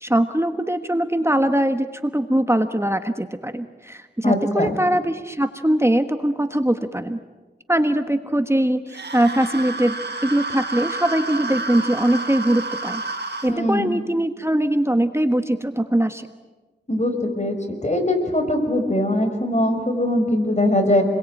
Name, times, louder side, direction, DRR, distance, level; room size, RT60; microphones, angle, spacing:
voice 1, 0.0-7.2 7.7-9.9 10.2-13.0 13.4-16.3, right 1 dB, 15° right, 8 dB, 1.4 m, -21 dB
voice 2, 4.2-4.8 13.5-13.9 16.9-21.0, left 1 dB, 40° left, 5 dB, 5.7 m, -21 dB
sound 1, 8.9-13.5, right 3 dB, 80° right, 3.7 m, -30 dB
29.5 x 22.0 x 9.1 m, 1.3 s
wide cardioid pair, 40°, 17 cm